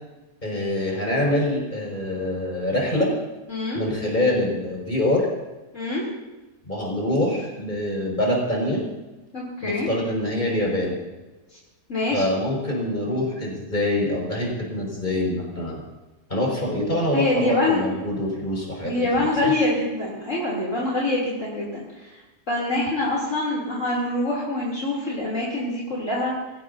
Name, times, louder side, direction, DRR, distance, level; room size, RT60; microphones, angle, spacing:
voice 1, 0.4-3.1 3.7-5.3 6.7-8.8 9.6-11.0 12.1-15.8 16.3-19.5, left 1 dB, 30° left, -2 dB, 5.9 m, -25 dB
voice 2, 3.5-3.8 5.7-6.0 9.3-9.9 11.9-12.3 17.1-17.8 18.8-22.1 22.5-26.3, left 2 dB, 50° left, -6 dB, 3.7 m, -25 dB
23.5 x 17.0 x 2.8 m, 1.1 s
omnidirectional pair, 1.7 m